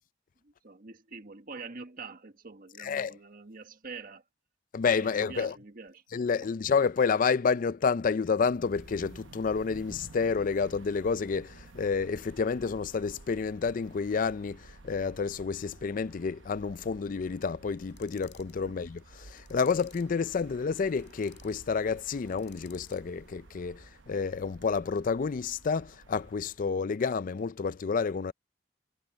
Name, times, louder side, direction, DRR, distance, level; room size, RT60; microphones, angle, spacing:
voice 1, 0.4-4.2 5.0-6.0 6.4-6.5 18.6-18.8, right 4 dB, 50° right, 1.5 m, -45 dB
voice 2, 2.8-3.1 4.7-5.5 6.1-28.3, left 5 dB, 45° left, 0.4 m, -29 dB
sound 1, 8.4-26.7, right 2 dB, 90° right, 0.9 m, -53 dB
sound 2, 17.9-18.6 19.3-20.2 20.9-21.6 22.3-23.1, left 13 dB, 65° left, 6.1 m, -56 dB
head